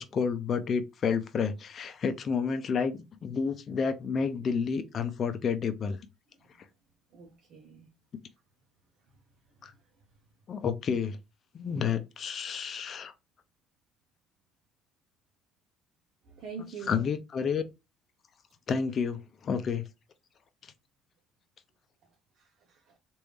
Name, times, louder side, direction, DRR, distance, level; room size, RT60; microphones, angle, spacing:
voice 1, 0.0-6.0 9.6-9.7 10.5-11.2 11.5-13.1 16.9-17.6 18.7-19.8, left 6 dB, 50° left, 0.6 m, -30 dB
voice 2, 7.1-7.9 16.3-17.1 22.4-23.0, right 5 dB, 65° right, 0.7 m, -44 dB
3.3 x 2.6 x 3.1 m
supercardioid pair, 80°, 0 cm